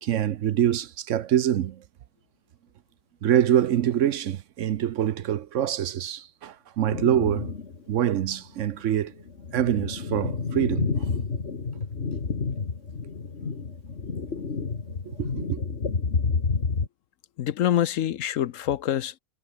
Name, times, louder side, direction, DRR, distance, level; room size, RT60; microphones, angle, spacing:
voice 1, 0.0-1.8 3.2-7.5 7.9-9.1 9.5-10.9 15.1-15.6, right 11 dB, 65° right, 1.0 m, -25 dB
sound 1, 6.9-7.8 8.2-8.3 9.0-16.9, left 5 dB, 50° left, 2.1 m, -30 dB
voice 2, 17.4-19.2, left 11 dB, 70° left, 1.0 m, -25 dB
omnidirectional pair, 1.5 m